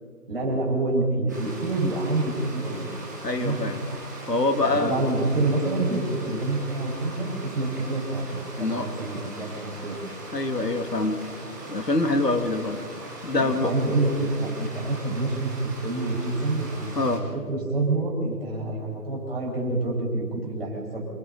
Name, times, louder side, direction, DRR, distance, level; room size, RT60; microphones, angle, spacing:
voice 1, 0.3-2.8 3.2-3.6 4.6-10.0 13.4-21.0, right 2 dB, 35° right, -2 dB, 5.6 m, -27 dB
Stream, 1.3-17.2, right 1 dB, 10° right, 2.0 m, -40 dB
voice 2, 3.2-3.8 4.3-5.0 6.3-6.4 8.6-8.9 10.3-11.2 11.7-12.8 13.2-13.7 16.9-17.2, left 2 dB, 75° left, 7 dB, 2.3 m, -25 dB
27.5 x 27.0 x 4.0 m, 2.1 s
figure-of-eight pair, 170°, 48 cm